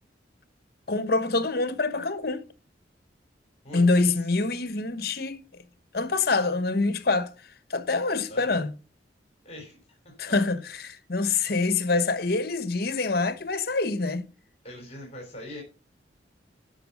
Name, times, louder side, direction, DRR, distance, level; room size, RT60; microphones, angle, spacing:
voice 1, 0.9-2.4 3.7-5.4 5.9-7.3 7.7-8.7 10.2-14.3, left 3 dB, 55° left, 1.1 m, -25 dB
voice 2, 3.6-4.3 8.3-8.7 9.4-10.4 13.0-13.1 14.6-15.6, left 1 dB, 35° left, 3.3 m, -43 dB
12.5 x 5.7 x 5.2 m
head